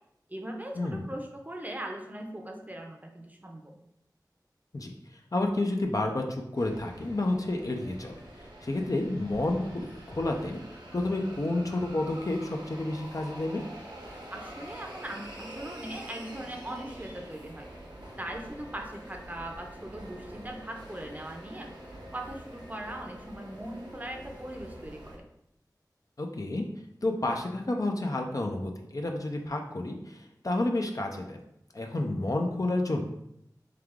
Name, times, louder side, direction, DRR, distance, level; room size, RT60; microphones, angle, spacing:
voice 1, 0.3-3.8 14.3-17.7 18.2-21.7 22.1-25.3, right 1 dB, 20° right, 2 dB, 0.7 m, -40 dB
voice 2, 5.3-8.2 8.6-10.6 10.9-13.6 26.2-26.6 27.0-31.4 31.7-33.0, left 2 dB, 50° left, 3 dB, 0.5 m, -30 dB
sound 1, 6.6-25.2, right 1 dB, 85° right, 0.9 m, -46 dB
3.4 x 3.3 x 3.6 m, 0.78 s
wide cardioid pair, 45°, 7 cm